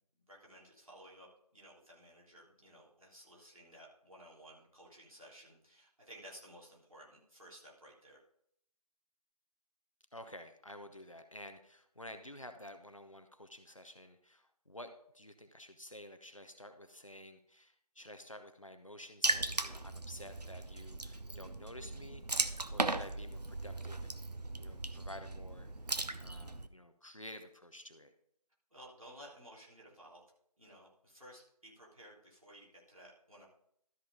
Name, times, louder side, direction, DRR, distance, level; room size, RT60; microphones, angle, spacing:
voice 1, 0.3-1.3 1.5-8.2 28.7-30.2 30.6-33.5, equal, 60° right, -4 dB, 3.3 m, -56 dB
voice 2, 10.1-24.2 24.5-25.7 26.1-28.1, left 1 dB, 55° left, 8 dB, 0.9 m, -51 dB
Water / Splash splatter, 19.2-26.7, right 2 dB, 90° right, 0.7 m, -37 dB
13.0 x 4.6 x 5.1 m, 0.70 s
figure-of-eight pair, 175°, 20 cm